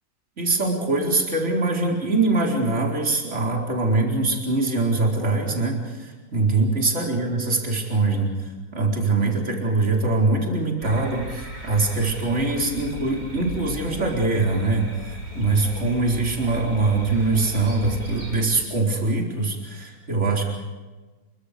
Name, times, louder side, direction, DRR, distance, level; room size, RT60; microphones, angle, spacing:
voice 1, 0.4-20.4, right 3 dB, 35° right, 0 dB, 4.8 m, -23 dB
sound 1, 10.8-18.4, right 2 dB, 60° right, 7.9 m, -36 dB
29.5 x 24.5 x 5.1 m, 1.2 s
omnidirectional pair, 2.1 m